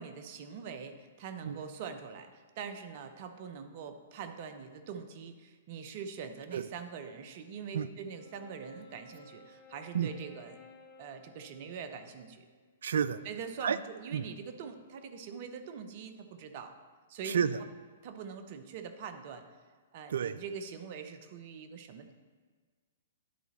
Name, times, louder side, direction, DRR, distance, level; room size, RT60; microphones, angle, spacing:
voice 1, 0.0-10.6 11.0-12.4 13.2-16.7 17.1-17.4 18.0-19.5 19.9-22.1, right 6 dB, 45° right, 7 dB, 0.7 m, -43 dB
Wind instrument woodwind instrument, 8.1-12.7, left 3 dB, 35° left, 1.0 m, -56 dB
voice 2, 12.8-13.2 13.6-13.8 14.1-14.3 17.2-17.6 20.1-20.4, right 8 dB, 65° right, 14 dB, 0.3 m, -30 dB
10.0 x 4.0 x 4.2 m, 1.5 s
figure-of-eight pair, 115°, 0 cm